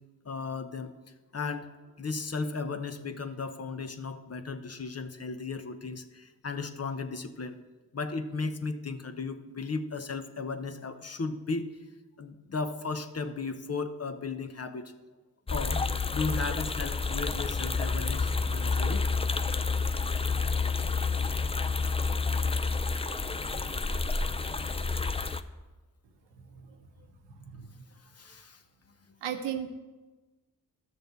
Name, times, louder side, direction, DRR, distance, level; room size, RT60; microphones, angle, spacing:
voice 1, 0.2-0.9 1.3-7.5 7.9-11.7 12.2-14.9 15.5-15.8 16.1-19.1 28.1-28.6, left 4 dB, 35° left, 8 dB, 0.9 m, -35 dB
sound 1, 15.5-25.4, left 4 dB, 15° left, 0.5 m, -29 dB
voice 2, 26.5-26.9 27.3-27.8 29.2-29.7, right 9 dB, 85° right, 6 dB, 0.9 m, -36 dB
12.5 x 6.5 x 4.0 m, 1.2 s
supercardioid pair, 45°, 41 cm